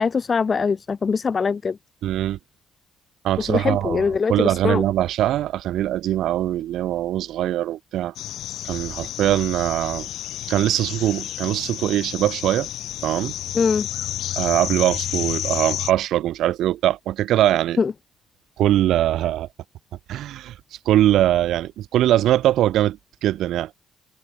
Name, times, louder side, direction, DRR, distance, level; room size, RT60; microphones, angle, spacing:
voice 1, 0.0-1.8 3.4-4.8 13.5-13.9 17.8-17.9, left 5 dB, 40° left, 0.9 m, -22 dB
voice 2, 2.0-2.4 3.2-8.1 8.6-10.1 10.5-12.7 13.0-13.3 14.3-17.8 18.6-19.5 20.1-20.6 20.8-23.7, right 13 dB, 80° right, 1.1 m, -22 dB
sound 1, 8.2-15.9, left 13 dB, 80° left, 2.6 m, -30 dB
cardioid pair, 90°, 0 cm